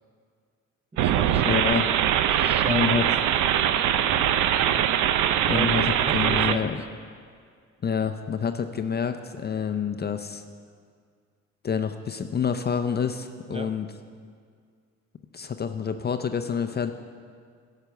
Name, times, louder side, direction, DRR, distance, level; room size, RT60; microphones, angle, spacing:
voice 1, 0.9-3.1 5.2-5.7 6.0-6.8 13.5-13.7, right 3 dB, 20° right, 7 dB, 0.7 m, -36 dB
sound 1, 1.0-6.6, right 10 dB, 85° right, 0.5 m, -22 dB
voice 2, 1.5-1.9 2.7-3.0 5.5-5.8 6.1-6.8 7.8-10.4 11.6-13.9 15.3-16.9, left 6 dB, 35° left, 8 dB, 0.5 m, -27 dB
11.5 x 5.8 x 8.0 m, 2.1 s
cardioid pair, 90°, 30 cm